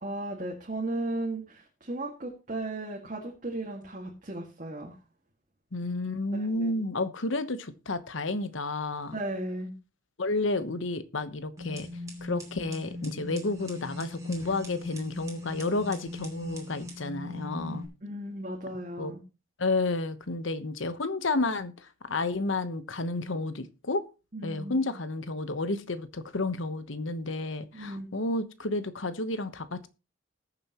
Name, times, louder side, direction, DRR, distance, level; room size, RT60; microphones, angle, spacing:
voice 1, 0.0-5.0 6.3-6.8 9.1-9.7 18.0-19.2 24.3-24.9 27.7-28.1, right 1 dB, 40° right, 2.0 m, -36 dB
voice 2, 5.7-9.1 10.2-11.9 12.2-17.9 19.0-19.1 19.6-24.0 24.4-29.9, left 2 dB, 70° left, 1.1 m, -31 dB
gas stove, 11.6-17.8, left 2 dB, 15° right, 2.6 m, -40 dB
20.0 x 7.0 x 3.0 m
head